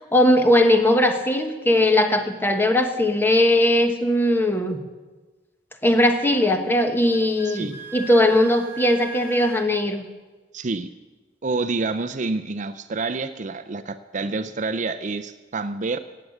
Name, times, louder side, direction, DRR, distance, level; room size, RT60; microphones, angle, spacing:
voice 1, 0.1-4.8 5.8-10.0, left 1 dB, 10° left, 5 dB, 1.3 m, -19 dB
Wind instrument woodwind instrument, 7.1-9.7, right 2 dB, 15° right, 1.0 m, -39 dB
voice 2, 7.4-7.7 10.5-10.9 11.4-16.0, right 3 dB, 45° right, 11 dB, 0.5 m, -28 dB
17.5 x 8.5 x 7.9 m, 1.2 s
head